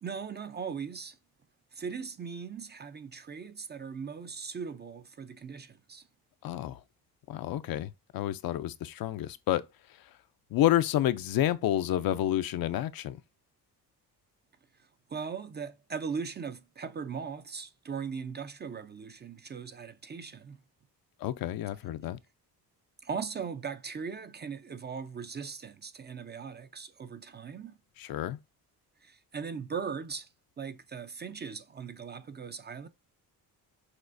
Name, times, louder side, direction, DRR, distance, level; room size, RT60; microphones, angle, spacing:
voice 1, 0.0-1.2 1.7-6.1 14.8-20.6 23.0-27.8 29.0-30.3 30.6-32.9, right 6 dB, 30° right, 0.4 m, -39 dB
voice 2, 6.4-6.8 7.3-9.6 10.5-13.2 21.2-22.2 28.0-28.4, left 13 dB, 65° left, 0.5 m, -29 dB
6.2 x 2.4 x 2.5 m
cardioid pair, 85°, 39 cm